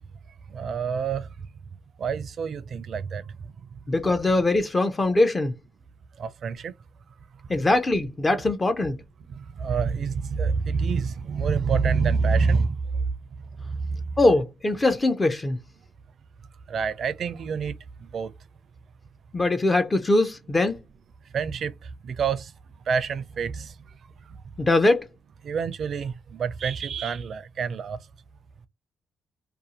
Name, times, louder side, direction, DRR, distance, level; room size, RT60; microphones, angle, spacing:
voice 1, 0.5-1.3 2.0-3.2 6.2-6.7 9.3-12.8 13.7-13.8 16.7-18.3 21.3-22.5 22.9-23.7 25.4-28.0, right 5 dB, 55° right, 0.4 m, -27 dB
voice 2, 3.9-5.6 7.5-9.0 14.2-15.6 19.3-20.8 24.6-25.1, left 2 dB, 25° left, 0.5 m, -22 dB
2.6 x 2.3 x 2.8 m
cardioid pair, 90°, 0 cm